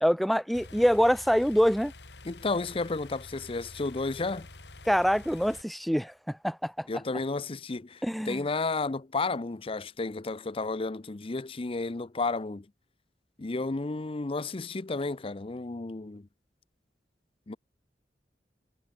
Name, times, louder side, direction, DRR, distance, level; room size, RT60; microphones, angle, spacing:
voice 1, 0.0-1.9 4.9-6.9 8.0-8.4, equal, ahead, 1.4 m, -25 dB
sound 1, 0.5-5.6, left 2 dB, 75° left, 2.5 m, -48 dB
voice 2, 2.2-4.5 6.9-12.7 13.4-16.3 17.5-17.6, left 3 dB, 30° left, 0.6 m, -32 dB
head